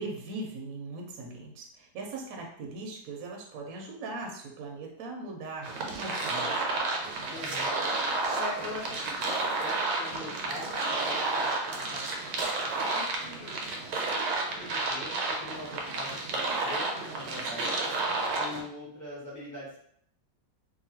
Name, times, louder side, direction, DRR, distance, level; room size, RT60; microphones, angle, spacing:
voice 1, 0.0-6.7, right 2 dB, 65° right, 0 dB, 0.9 m, -40 dB
sound 1, 5.6-18.6, right 3 dB, 85° right, 1.3 m, -31 dB
voice 2, 7.3-7.8 8.3-9.0 9.3-12.0 12.8-13.6 14.3-17.9 18.4-19.8, left 1 dB, 15° left, -7 dB, 0.7 m, -42 dB
2.8 x 2.5 x 2.8 m, 0.65 s
omnidirectional pair, 1.9 m